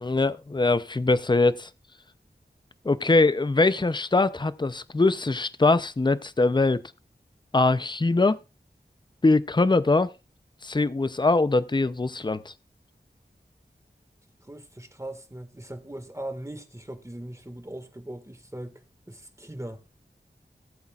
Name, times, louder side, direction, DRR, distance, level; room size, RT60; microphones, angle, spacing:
voice 1, 0.0-1.7 2.8-6.8 7.5-8.4 9.2-10.1 10.6-12.5, left 3 dB, 25° left, 0.5 m, -22 dB
voice 2, 14.4-18.8 19.1-19.8, right 1 dB, 15° right, 1.7 m, -39 dB
18.5 x 8.0 x 2.4 m
wide cardioid pair, 50°, 18 cm